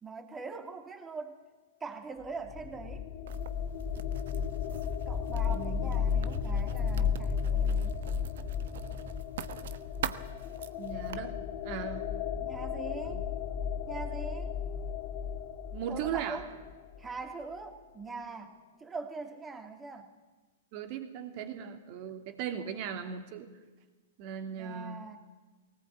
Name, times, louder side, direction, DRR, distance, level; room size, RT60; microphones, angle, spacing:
voice 1, 0.0-1.4 1.8-3.1 5.1-8.0 12.4-13.2 13.9-14.5 15.9-16.5 17.0-20.1 24.5-25.2, right 4 dB, 15° right, 6 dB, 2.7 m, -42 dB
sound 1, 2.2-17.0, left 7 dB, 45° left, 2.4 m, -34 dB
Writing, 3.3-11.2, right 10 dB, 70° right, 1.0 m, -45 dB
voice 2, 5.4-5.8 10.8-11.4 11.6-12.0 13.1-13.2 15.7-16.4 20.7-23.5 24.2-25.0, right 8 dB, 50° right, 6 dB, 2.9 m, -38 dB
19.0 x 18.5 x 8.8 m, 1.2 s
hypercardioid pair, 130°, 0 cm